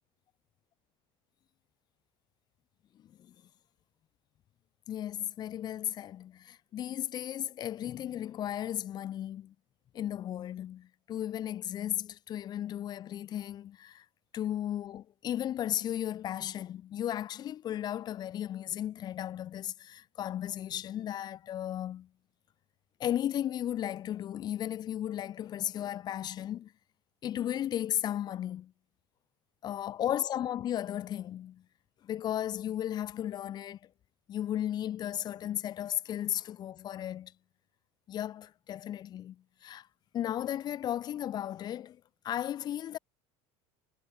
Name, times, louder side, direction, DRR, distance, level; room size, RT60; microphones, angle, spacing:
voice 1, 2.9-3.3 4.9-9.5 9.9-14.0 14.3-22.1 23.0-26.7 27.2-28.7 29.6-31.6 32.0-33.8 34.3-37.3 38.1-39.9 40.1-43.0, left 11 dB, 35° left, 1.4 m, -35 dB
cardioid pair, 145°, 12 cm